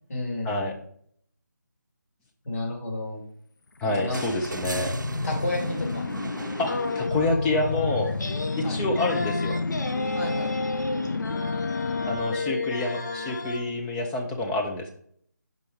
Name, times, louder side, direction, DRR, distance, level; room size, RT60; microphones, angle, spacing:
voice 1, 0.1-0.6 2.4-3.2 3.9-4.4 5.2-6.1 8.6-8.8 10.1-10.6, left 2 dB, 55° left, -3 dB, 2.9 m, -31 dB
sound 1, 3.8-12.4, left 3 dB, 85° left, 0.5 m, -31 dB
voice 2, 3.8-5.0 6.6-8.1 8.6-9.6 12.1-14.9, left 2 dB, 10° left, 1 dB, 0.4 m, -28 dB
sound 2, 4.1-7.5 9.0-9.1, right 3 dB, 85° right, 0.5 m, -38 dB
sound 3, 6.6-13.6, left 3 dB, 70° left, 1.0 m, -32 dB
5.3 x 4.4 x 4.9 m, 0.62 s
figure-of-eight pair, 160°, 10 cm